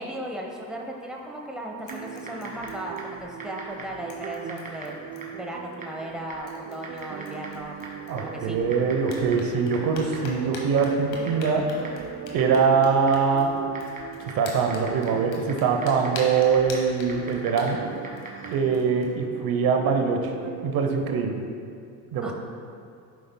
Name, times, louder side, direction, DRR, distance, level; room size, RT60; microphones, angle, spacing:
voice 1, 0.0-5.0 5.3-7.8 8.2-8.6 22.2-22.3, right 1 dB, ahead, 0 dB, 0.9 m, -36 dB
sound 1, 1.0-1.5 1.8-3.4 3.7-3.8 4.1-5.5 6.1-6.2 6.5-8.6 9.0-19.1, left 2 dB, 85° left, 1.4 m, -44 dB
Typing, 1.8-18.7, right 2 dB, 20° right, 1.6 m, -44 dB
sound 2, 1.9-21.2, right 9 dB, 40° right, 0.5 m, -40 dB
voice 2, 8.1-11.7 12.3-13.5 14.2-17.8 18.5-20.3 20.6-21.4 22.1-22.3, right 5 dB, 60° right, 4 dB, 0.9 m, -23 dB
12.5 x 5.4 x 2.2 m, 2.4 s
supercardioid pair, 95°, 39 cm